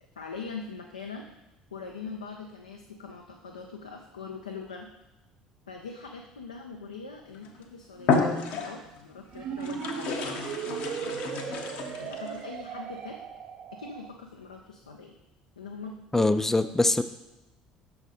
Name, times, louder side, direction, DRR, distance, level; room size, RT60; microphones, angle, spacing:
voice 1, 0.2-1.3 1.7-4.9 5.7-11.2 12.0-13.2 13.7-15.2 15.6-16.3 16.8-17.0, left 4 dB, 80° left, 2 dB, 0.4 m, -42 dB
sound 1, 7.3-7.6 8.0-9.0 9.6-12.4, left 4 dB, 60° left, 0.7 m, -30 dB
sound 2, 9.3-14.1, right 7 dB, 50° right, 0.5 m, -37 dB
voice 2, 16.1-17.0, left 2 dB, 10° left, 12 dB, 0.3 m, -23 dB
6.1 x 4.2 x 4.1 m, 0.97 s
figure-of-eight pair, 55°, 3 cm